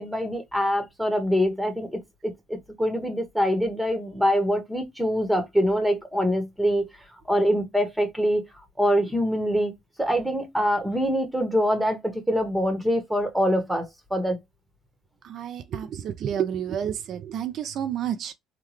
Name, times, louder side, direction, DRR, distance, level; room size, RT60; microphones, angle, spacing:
voice 1, 0.0-6.9 7.3-8.4 8.8-9.7 10.0-14.4, equal, 5° right, 1.2 m, -24 dB
voice 2, 15.2-18.3, right 9 dB, 65° right, 0.4 m, -30 dB
3.6 x 2.3 x 3.1 m
supercardioid pair, 75°, 0 cm